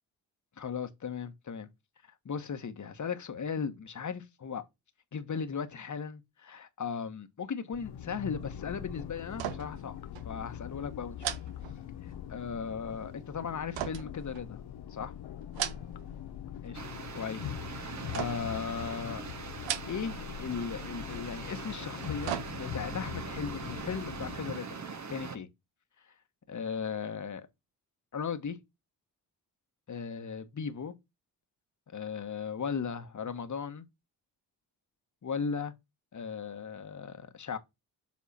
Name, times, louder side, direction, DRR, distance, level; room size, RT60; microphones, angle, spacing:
voice 1, 0.6-1.7 2.2-4.6 5.1-10.0 10.2-11.3 12.0-14.6 14.9-15.1 16.6-16.8 17.1-19.2 19.9-24.8 25.1-25.5 26.5-27.5 28.1-28.6 29.9-30.9 31.9-33.8 35.2-35.7 36.1-37.6, left 6 dB, 45° left, 1.4 m, -37 dB
sound 1, 7.7-24.4, left 10 dB, 65° left, 0.9 m, -42 dB
sound 2, 9.3-9.9 10.2-10.3 11.2-12.3 13.7-14.9 15.4-16.2 16.5-17.1 18.1-18.6 19.5-20.3 20.6-20.7 21.8-23.0 23.4-23.5, right 11 dB, 85° right, 0.8 m, -38 dB
sound 3, 16.7-25.4, right 5 dB, 40° right, 1.4 m, -42 dB
7.5 x 3.5 x 4.3 m
supercardioid pair, 55°, 42 cm